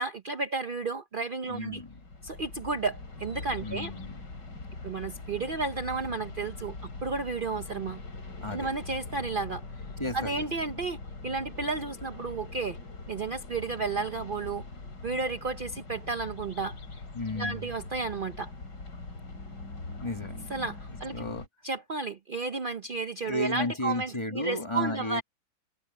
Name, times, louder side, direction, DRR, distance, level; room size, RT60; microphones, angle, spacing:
voice 1, 0.0-1.8 2.2-3.9 4.8-6.8 7.0-8.0 8.5-9.6 10.1-12.8 13.1-14.6 15.0-16.8 17.4-18.5 20.5-21.2 21.6-25.2, right 4 dB, 60° right, 0.5 m, -32 dB
voice 2, 1.5-2.0 3.6-4.2 8.4-8.7 10.0-10.5 17.1-17.7 20.0-20.4 21.1-21.5 23.3-25.2, left 1 dB, 15° left, 2.1 m, -33 dB
sound 1, 1.6-21.5, left 3 dB, 55° left, 4.3 m, -42 dB
omnidirectional pair, 2.2 m